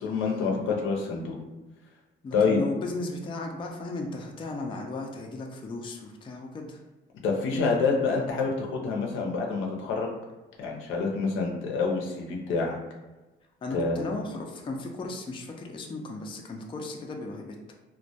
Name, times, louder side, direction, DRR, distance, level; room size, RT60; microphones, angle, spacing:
voice 1, 0.0-1.4 2.3-2.6 7.2-10.1 10.6-12.8 13.7-14.0, left 4 dB, 80° left, 0 dB, 0.6 m, -27 dB
voice 2, 2.2-6.8 13.6-17.7, left 2 dB, 25° left, 1 dB, 0.3 m, -36 dB
2.1 x 2.1 x 2.7 m, 1.1 s
cardioid pair, 90°, 20 cm